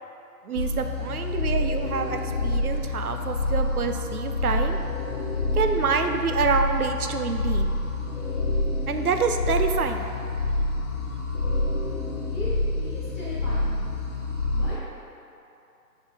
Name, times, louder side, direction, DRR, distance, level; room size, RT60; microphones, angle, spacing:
voice 1, 0.4-4.8 5.6-7.7 8.9-10.1, right 5 dB, 65° right, 6 dB, 0.5 m, -27 dB
sound 1, 0.6-14.8, left 2 dB, 45° left, 0.8 m, -27 dB
voice 2, 12.3-13.8 14.5-14.8, left 1 dB, 10° right, -20 dB, 1.3 m, -38 dB
5.1 x 4.3 x 4.8 m, 2.7 s
hypercardioid pair, 165°, 49 cm